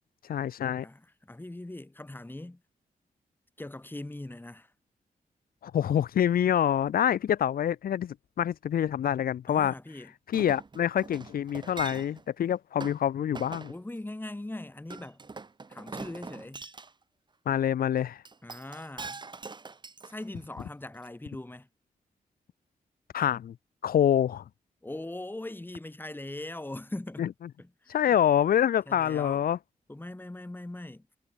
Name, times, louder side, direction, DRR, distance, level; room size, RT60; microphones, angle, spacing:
voice 1, 0.3-0.9 5.6-9.7 10.3-13.7 17.5-18.2 23.1-23.6 23.8-24.4 27.2-27.3 27.9-29.6, left 10 dB, 80° left, 0.5 m, -26 dB
voice 2, 0.8-2.6 3.6-4.7 9.5-10.1 13.7-15.2 15.7-16.6 18.4-19.2 20.0-21.7 24.8-27.2 27.6-28.2 28.9-29.4 29.9-31.0, left 1 dB, 15° left, 2.9 m, -40 dB
Chink clink, 10.3-12.3 12.8-13.0 13.3-13.7 14.9-16.9 18.2-20.6 21.1-21.2, right 4 dB, 30° right, 0.9 m, -42 dB
wide cardioid pair, 95°, 15 cm